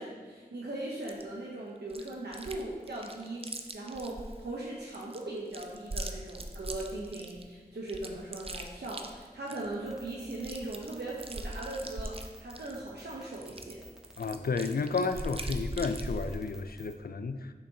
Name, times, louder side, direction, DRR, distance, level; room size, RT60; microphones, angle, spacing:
voice 1, 0.0-13.8, right 2 dB, 85° right, -5 dB, 0.8 m, -39 dB
Chewing mastication, 1.0-1.2 1.9-2.6 2.9-4.4 4.9-7.4 7.9-9.7 10.0-10.1 10.3-12.8 13.3-16.4, right 2 dB, 35° right, 0.5 m, -40 dB
sound 1, 9.9-17.0, equal, 5° right, 0.8 m, -52 dB
voice 2, 14.2-17.5, left 4 dB, 65° left, 9 dB, 0.4 m, -32 dB
6.8 x 5.4 x 2.7 m, 1.4 s
wide cardioid pair, 45°, 17 cm